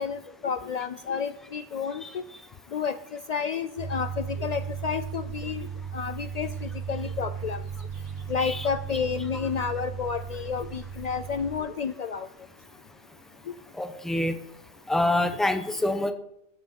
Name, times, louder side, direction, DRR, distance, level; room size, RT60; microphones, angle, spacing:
voice 1, 0.0-2.2 2.7-5.7 5.9-7.6 8.3-12.3, left 6 dB, 80° left, 11 dB, 0.3 m, -31 dB
sound 1, 3.8-11.6, right 7 dB, 45° right, 1.2 m, -36 dB
voice 2, 13.7-14.4 14.9-16.1, left 1 dB, ahead, 8 dB, 0.7 m, -26 dB
13.5 x 7.9 x 4.1 m, 0.82 s
omnidirectional pair, 1.2 m